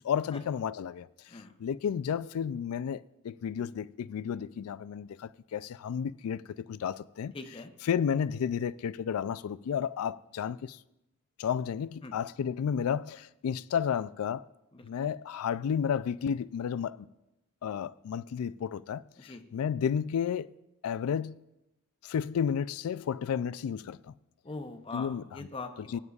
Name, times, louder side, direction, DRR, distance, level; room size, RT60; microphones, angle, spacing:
voice 1, 0.0-1.1 1.6-7.3 7.9-10.8 11.4-14.5 14.8-17.1 17.6-20.5 20.8-21.4 22.0-24.1 24.9-25.2 25.9-26.0, left 7 dB, 80° left, 0.3 m, -32 dB
voice 2, 7.3-7.7 12.0-12.1 14.7-14.9 19.2-19.4 24.4-26.0, left 3 dB, 25° left, 0.7 m, -42 dB
16.0 x 9.5 x 2.4 m
head